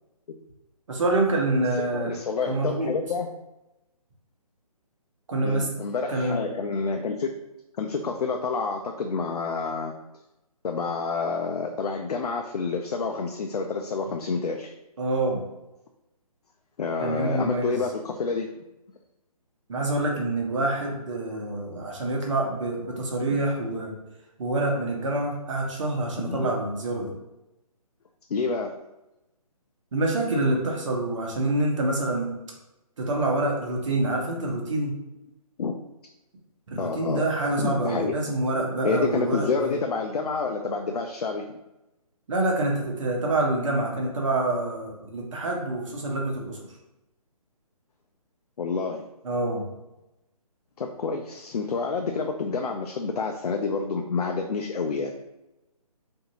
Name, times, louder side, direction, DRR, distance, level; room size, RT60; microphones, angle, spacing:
voice 1, 0.9-2.1 2.5-2.9 5.3-5.7 6.1-6.5 15.0-15.4 17.0-17.8 19.7-23.9 24.4-27.1 29.9-32.3 33.0-34.9 36.7-39.8 42.3-46.6 49.2-49.7, right 2 dB, 55° right, 0 dB, 0.9 m, -26 dB
voice 2, 1.9-3.3 5.4-7.3 7.8-9.9 10.6-14.7 16.8-18.6 26.2-26.5 28.3-28.7 35.6-35.8 36.8-38.1 38.8-41.6 48.6-49.0 50.8-55.1, left 4 dB, 80° left, 3 dB, 0.4 m, -28 dB
2.6 x 2.5 x 2.8 m, 0.97 s
hypercardioid pair, 155°, 20 cm